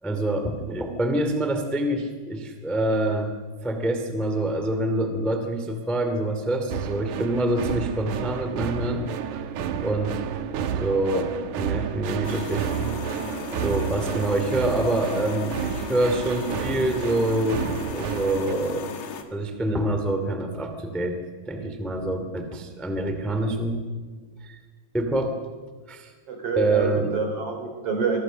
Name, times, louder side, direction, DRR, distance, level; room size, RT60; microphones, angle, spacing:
voice 1, 0.0-3.4 3.6-9.0 9.8-10.2 10.8-12.7 13.6-17.6 17.9-18.9 19.3-21.2 21.5-23.8 24.4-24.6 24.9-25.4 25.9-26.1 26.5-27.1, right 1 dB, ahead, 6 dB, 0.9 m, -26 dB
sound 1, 6.7-18.5, right 8 dB, 75° right, 1.9 m, -30 dB
sound 2, 12.2-19.2, left 7 dB, 55° left, 3.0 m, -36 dB
voice 2, 26.3-28.2, right 5 dB, 35° right, 3 dB, 4.8 m, -27 dB
26.0 x 22.5 x 6.4 m, 1.5 s
omnidirectional pair, 5.1 m